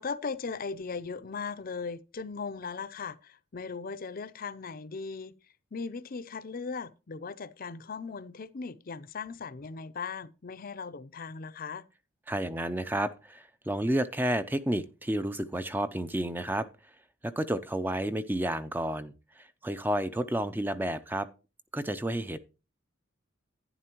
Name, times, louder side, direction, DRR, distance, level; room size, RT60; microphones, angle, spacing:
voice 1, 0.0-5.3 5.7-11.8, left 5 dB, 45° left, 0.5 m, -38 dB
voice 2, 12.3-16.7 17.2-21.3 21.7-22.4, right 1 dB, 10° right, 0.5 m, -31 dB
11.0 x 10.0 x 3.0 m
head